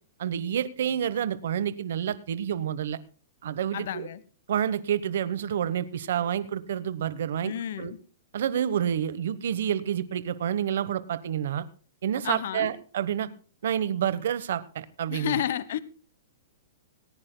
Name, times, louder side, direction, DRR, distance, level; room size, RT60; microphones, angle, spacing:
voice 1, 0.2-3.0 3.4-4.1 4.5-7.9 8.3-11.6 12.0-13.3 13.6-15.3, right 9 dB, 60° right, 14 dB, 1.1 m, -29 dB
voice 2, 3.7-4.2 7.4-8.0 12.2-12.7 15.1-15.8, left 10 dB, 55° left, 18 dB, 1.1 m, -31 dB
19.5 x 18.0 x 2.2 m, 0.38 s
hypercardioid pair, 175°, 0 cm